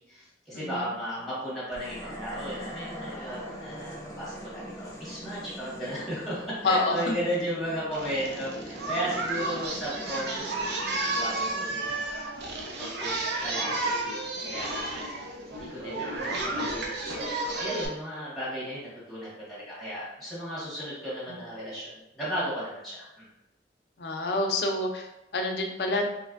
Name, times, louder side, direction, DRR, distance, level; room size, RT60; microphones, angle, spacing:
voice 1, 0.0-12.2 12.5-13.9 14.4-15.2 15.5-23.2, equal, ahead, -10 dB, 1.5 m, -35 dB
voice 2, 0.5-0.9 6.6-7.1 24.0-26.1, left 2 dB, 65° left, 3 dB, 0.5 m, -28 dB
sound 1, 1.7-13.1, equal, 20° left, 0.7 m, -43 dB
Singing, 7.9-17.9, right 2 dB, 70° right, 0.6 m, -32 dB
3.1 x 3.1 x 2.5 m, 0.91 s
head